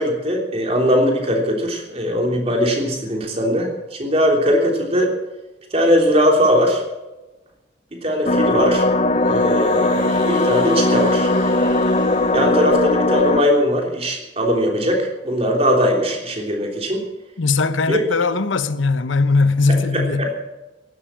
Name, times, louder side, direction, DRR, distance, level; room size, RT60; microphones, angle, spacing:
voice 1, 0.0-5.1 5.7-6.8 7.9-8.9 9.3-11.3 12.3-17.0 17.9-18.0 19.9-20.4, equal, 30° right, 3.3 m, -20 dB
sound 1, 8.3-13.4, left 2 dB, 35° left, 0.7 m, -18 dB
sound 2, 9.2-13.3, right 2 dB, 85° right, 4.6 m, -40 dB
voice 2, 17.4-20.4, left 3 dB, 85° left, 0.9 m, -19 dB
15.5 x 12.0 x 7.5 m
head